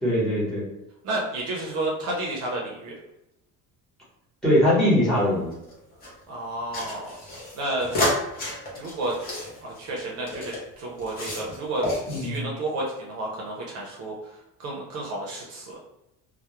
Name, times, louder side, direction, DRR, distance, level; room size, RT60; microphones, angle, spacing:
voice 1, 0.0-0.7 4.4-5.5 12.1-12.4, equal, ahead, -7 dB, 0.9 m, -21 dB
voice 2, 1.0-3.0 6.3-7.1 7.5-7.9 8.7-9.1 9.6-11.8 12.2-15.8, right 2 dB, 50° right, -2 dB, 0.5 m, -31 dB
sound 1, 5.1-6.1 6.7-10.6 11.0-11.6 11.8-12.4, left 1 dB, 30° left, 0.6 m, -31 dB
2.2 x 2.0 x 2.9 m, 0.86 s
cardioid pair, 170°, 32 cm